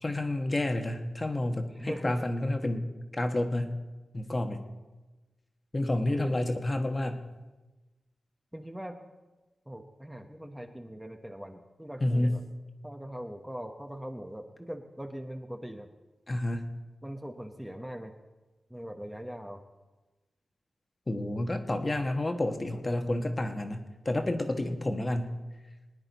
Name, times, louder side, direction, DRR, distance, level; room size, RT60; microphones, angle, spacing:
voice 1, 0.0-2.9 3.1-3.7 4.1-4.6 5.7-7.2 12.0-12.3 16.3-16.7 21.1-25.4, left 1 dB, 30° left, 5 dB, 1.2 m, -30 dB
voice 2, 1.7-2.2 6.1-6.4 8.5-9.0 9.7-12.4 12.8-15.9 17.0-18.1 18.7-19.6 24.8-25.1, equal, 5° right, 4 dB, 0.9 m, -41 dB
20.0 x 9.6 x 4.1 m, 1.2 s
cardioid pair, 75°, 0 cm